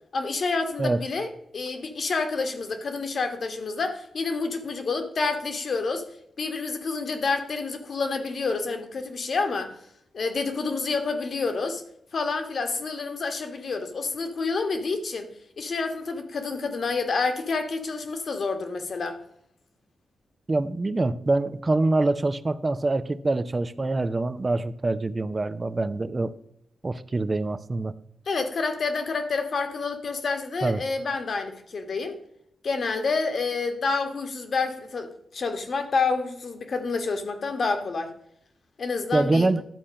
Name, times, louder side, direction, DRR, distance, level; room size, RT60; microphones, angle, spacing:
voice 1, 0.1-6.1 6.4-9.8 10.1-11.8 12.1-15.3 15.6-19.2 28.3-32.2 32.6-38.1 38.8-39.5, left 4 dB, 55° left, 6 dB, 1.5 m, -28 dB
voice 2, 20.5-26.3 26.8-27.9 30.6-30.8 39.1-39.6, right 2 dB, 30° right, 13 dB, 0.6 m, -25 dB
12.0 x 4.3 x 6.3 m, 0.73 s
cardioid pair, 95°, 0 cm